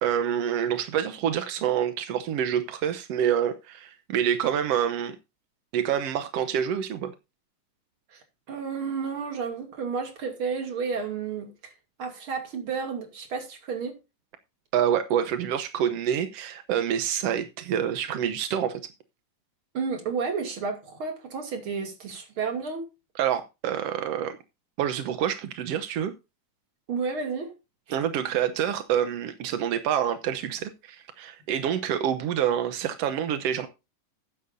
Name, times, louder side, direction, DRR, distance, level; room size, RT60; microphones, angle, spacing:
voice 1, 0.0-5.1 5.7-7.1 14.7-18.8 23.2-24.4 24.8-26.1 27.9-33.7, right 9 dB, 70° right, 1.5 m, -27 dB
voice 2, 8.5-11.7 12.0-14.0 19.7-22.9 26.9-27.5, right 5 dB, 40° right, 3.1 m, -31 dB
13.5 x 10.5 x 2.7 m
omnidirectional pair, 3.9 m